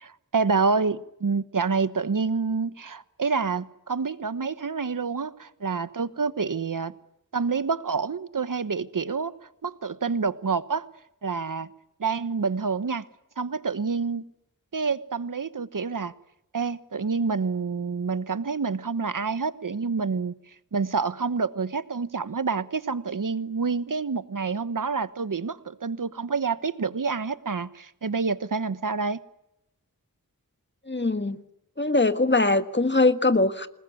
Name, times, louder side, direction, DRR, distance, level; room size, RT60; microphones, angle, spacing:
voice 1, 0.0-6.9 7.3-9.3 9.6-10.9 11.2-11.7 12.0-13.0 13.4-14.3 14.7-16.1 16.5-20.3 20.7-29.2, right 5 dB, 70° right, 14 dB, 1.1 m, -27 dB
voice 2, 30.9-31.4 31.8-33.7, left 2 dB, 30° left, 10 dB, 1.6 m, -22 dB
28.0 x 20.5 x 9.6 m, 0.86 s
wide cardioid pair, 55°, 34 cm